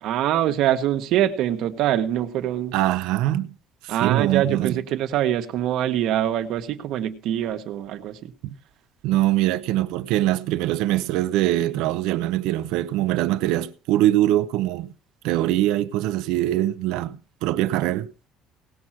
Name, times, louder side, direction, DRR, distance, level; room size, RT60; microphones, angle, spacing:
voice 1, 0.0-2.7 3.9-8.3, right 11 dB, 65° right, 1.5 m, -24 dB
voice 2, 2.7-3.5 3.8-4.8 8.4-8.5 9.0-14.9 15.2-18.1, right 14 dB, 80° right, 0.8 m, -23 dB
18.0 x 6.3 x 5.9 m
cardioid pair, 145°, 0 cm